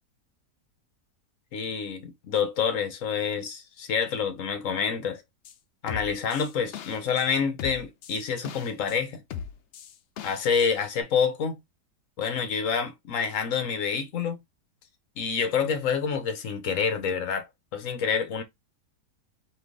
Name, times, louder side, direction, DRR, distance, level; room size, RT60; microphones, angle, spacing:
voice 1, 1.5-5.2 5.8-9.2 10.2-11.6 12.2-14.4 15.2-17.5 17.7-18.4, left 6 dB, 55° left, 1.2 m, -27 dB
sound 1, 5.4-5.5 5.9-7.3 7.6-9.0 9.3-10.7 11.0-11.1, left 8 dB, 80° left, 0.6 m, -38 dB
4.4 x 2.6 x 3.7 m
omnidirectional pair, 1.8 m